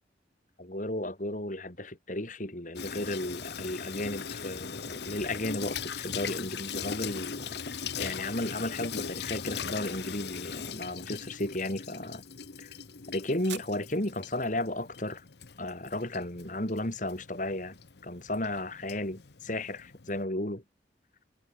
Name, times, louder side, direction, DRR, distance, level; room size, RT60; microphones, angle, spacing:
voice 1, 0.6-7.6 8.0-12.2 12.6-12.7 13.1-15.2 15.6-17.8 18.0-20.6, left 1 dB, 45° left, 3.5 m, -34 dB
Water tap faucet / Sink (filling or washing), 2.8-20.2, left 6 dB, 65° left, 1.0 m, -40 dB
sound 1, 9.1-17.0, right 11 dB, 75° right, 7.9 m, -53 dB
head